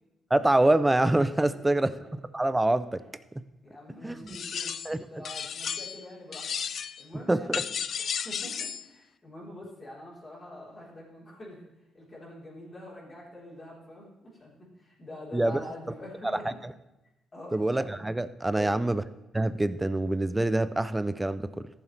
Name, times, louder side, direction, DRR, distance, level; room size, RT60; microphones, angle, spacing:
voice 1, 0.3-1.9 2.3-3.0 3.4-3.5 4.0-4.1 4.9-5.2 7.3-7.6 15.3-15.6 16.2-16.5 17.5-19.0 19.3-21.7, right 1 dB, 10° right, 14 dB, 0.5 m, -25 dB
voice 2, 3.6-11.6 11.9-16.6 17.3-17.6 18.5-18.8, left 1 dB, 30° left, -6 dB, 3.8 m, -45 dB
sound 1, 4.3-5.0 5.2-6.0 6.3-7.0 7.5-8.9, left 7 dB, 55° left, 0.4 m, -33 dB
14.0 x 7.1 x 3.3 m, 0.98 s
cardioid pair, 90°, 0 cm